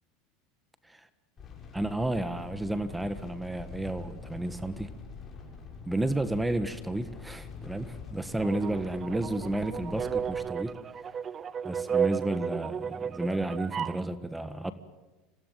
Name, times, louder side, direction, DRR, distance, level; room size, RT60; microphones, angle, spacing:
sound 1, 1.4-10.4, left 5 dB, 30° left, 7.1 m, -44 dB
voice 1, 1.7-4.9 5.8-10.7 11.6-14.7, right 1 dB, 5° right, 12 dB, 1.5 m, -32 dB
sound 2, 8.4-14.0, right 7 dB, 30° right, 0.7 m, -33 dB
26.5 x 17.0 x 9.4 m, 1.2 s
supercardioid pair, 115°, 0 cm